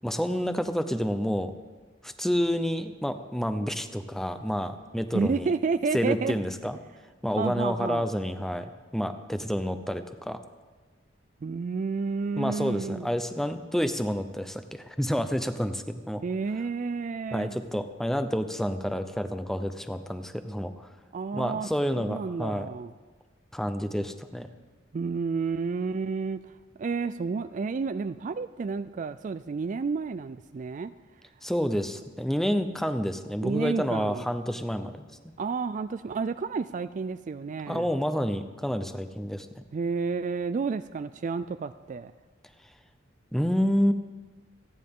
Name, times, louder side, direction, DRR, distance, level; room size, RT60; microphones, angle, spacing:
voice 1, 0.0-1.5 2.0-5.5 5.9-6.8 7.2-10.4 12.4-16.2 17.3-20.9 21.3-22.7 23.5-24.5 31.4-35.0 37.7-39.5 43.3-43.9, equal, ahead, 9 dB, 0.7 m, -29 dB
voice 2, 5.1-6.4 7.3-8.1 11.4-13.1 16.2-17.6 21.1-21.7 21.9-22.9 24.9-26.5 26.8-30.9 33.4-34.2 35.4-37.9 39.7-42.1, right 4 dB, 40° right, 12 dB, 0.3 m, -30 dB
27.5 x 10.0 x 3.7 m, 1.4 s
head